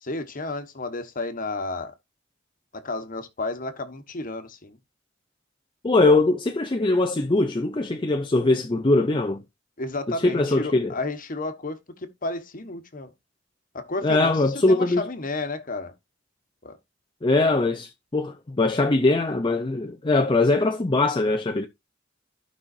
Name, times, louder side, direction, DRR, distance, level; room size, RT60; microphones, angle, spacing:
voice 1, 0.0-1.9 2.7-4.8 9.8-13.1 13.7-15.9 16.6-16.8, left 2 dB, 45° left, 1.3 m, -32 dB
voice 2, 5.8-9.4 10.2-10.9 14.0-15.0 17.2-21.7, left 2 dB, 25° left, 0.6 m, -21 dB
15.5 x 5.5 x 2.5 m
head